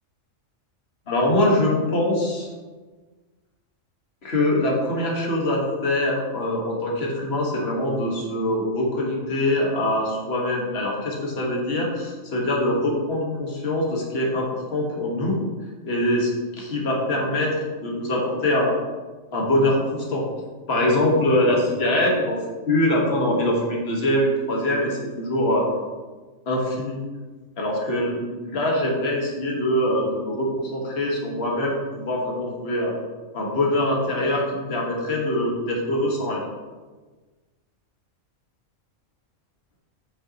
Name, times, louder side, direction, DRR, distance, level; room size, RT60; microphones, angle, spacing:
voice 1, 1.1-2.5 4.2-14.4 14.7-15.4 15.9-17.5 17.8-18.7 19.3-20.2 20.7-22.4 22.7-25.7 26.5-27.0 27.6-32.9 33.3-36.4, left 1 dB, 50° left, -2 dB, 1.7 m, -23 dB
8.6 x 6.7 x 2.9 m, 1.3 s
omnidirectional pair, 1.4 m